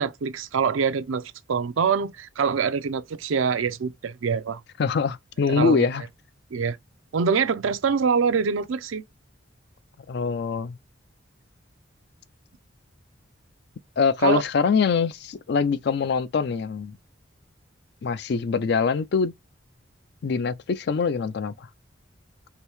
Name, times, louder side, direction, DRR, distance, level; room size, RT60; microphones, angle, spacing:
voice 1, 0.0-4.6 5.5-5.9 6.5-6.8 7.1-9.0 14.2-14.4, right 6 dB, 85° right, 0.5 m, -24 dB
voice 2, 4.8-6.0 10.1-10.8 14.0-17.0 18.0-19.3 20.2-21.7, left 5 dB, 55° left, 0.4 m, -24 dB
2.9 x 2.7 x 3.3 m
head